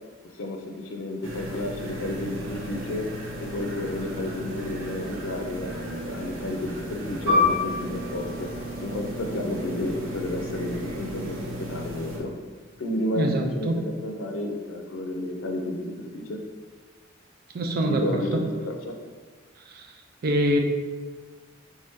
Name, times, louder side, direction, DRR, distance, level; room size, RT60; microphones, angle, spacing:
voice 1, 0.3-3.1 3.4-8.5 8.8-12.3 12.8-16.4 17.8-19.0, left 1 dB, 90° left, 3 dB, 0.5 m, -31 dB
sound 1, 1.2-12.2, right 1 dB, 90° right, 0.7 m, -36 dB
Piano, 7.3-12.3 12.6-12.8 13.6-13.9, left 4 dB, 65° right, 1.3 m, -29 dB
voice 2, 13.2-13.7 17.5-18.4 19.7-19.9 20.2-20.6, right 1 dB, 50° right, 3 dB, 0.4 m, -24 dB
3.5 x 2.7 x 3.5 m, 1.4 s
head